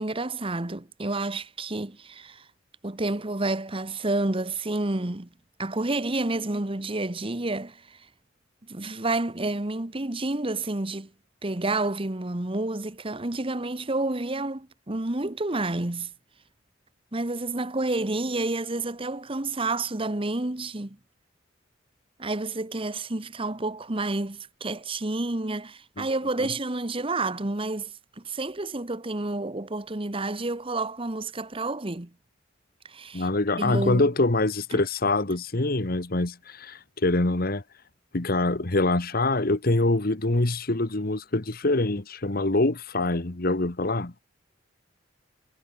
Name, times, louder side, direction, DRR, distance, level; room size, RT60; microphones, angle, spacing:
voice 1, 0.0-2.4 2.8-5.3 5.6-8.0 8.7-11.1 11.4-16.1 17.1-21.0 22.2-32.1 32.9-33.3 33.6-34.1 34.7-34.8, right 2 dB, 30° right, 1.2 m, -29 dB
voice 2, 33.1-37.6 38.1-44.1, left 2 dB, 50° left, 1.4 m, -25 dB
head